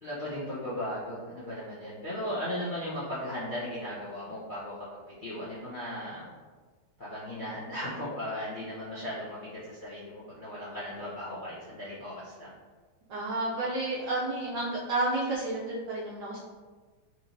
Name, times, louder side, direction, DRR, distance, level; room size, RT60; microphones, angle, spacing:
voice 1, 0.0-4.9 5.2-6.3 7.0-9.4 9.7-12.5, left 1 dB, 75° left, -12 dB, 0.4 m, -36 dB
voice 2, 13.1-16.4, right 2 dB, 80° right, -6 dB, 0.9 m, -31 dB
4.2 x 2.9 x 2.6 m, 1.4 s
omnidirectional pair, 2.3 m